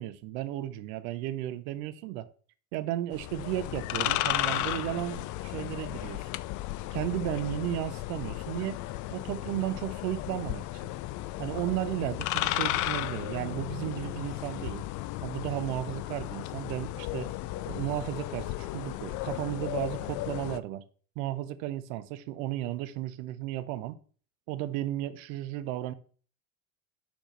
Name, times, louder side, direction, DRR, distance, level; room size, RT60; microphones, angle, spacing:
voice 1, 0.0-2.3 2.7-6.3 6.9-8.8 9.1-10.9 11.4-14.8 15.2-17.3 17.7-20.8 21.2-24.0 24.5-25.9, right 14 dB, 65° right, 0.8 m, -34 dB
sound 1, 3.1-20.6, left 15 dB, 45° left, 0.5 m, -34 dB
5.7 x 4.5 x 4.4 m
hypercardioid pair, 75°, 42 cm